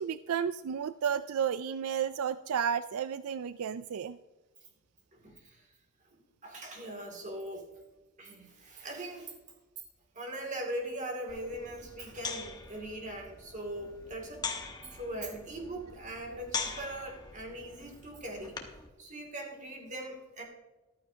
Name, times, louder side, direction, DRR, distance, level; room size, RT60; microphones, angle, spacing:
voice 1, 0.0-4.2, right 8 dB, 80° right, 14 dB, 0.4 m, -32 dB
voice 2, 5.1-5.7 6.4-7.7 8.2-9.3 10.1-14.5 14.9-18.6 19.0-20.4, right 1 dB, 35° right, 1 dB, 2.5 m, -40 dB
sound 1, 11.3-18.9, left 5 dB, 20° left, 1.2 m, -42 dB
14.5 x 12.0 x 2.8 m, 1.1 s
head